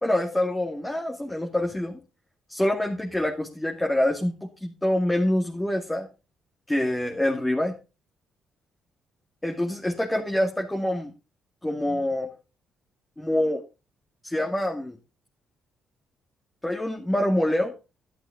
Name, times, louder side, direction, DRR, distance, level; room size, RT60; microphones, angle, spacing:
voice 1, 0.0-2.0 2.5-6.1 6.7-7.7 9.4-11.1 11.6-12.3 13.2-13.6 14.2-15.0 16.6-17.7, left 1 dB, 10° left, 1 dB, 2.3 m, -26 dB
12.0 x 11.5 x 3.6 m, 0.31 s
cardioid pair, 90°, 0 cm